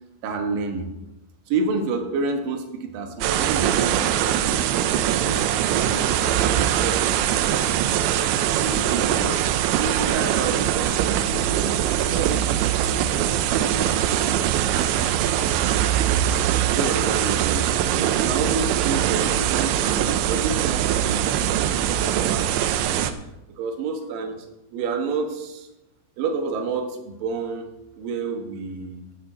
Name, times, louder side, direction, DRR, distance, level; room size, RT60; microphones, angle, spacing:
voice 1, 0.2-0.9 1.5-8.3 8.6-9.5 9.8-11.7 12.0-14.6 16.4-22.9 23.6-24.4 24.7-25.7 26.2-27.7 28.0-29.1, right 4 dB, 65° right, 4 dB, 2.4 m, -30 dB
sound 1, 3.2-23.1, right 11 dB, 80° right, 2.7 m, -22 dB
16.0 x 7.3 x 4.4 m, 0.92 s
omnidirectional pair, 5.5 m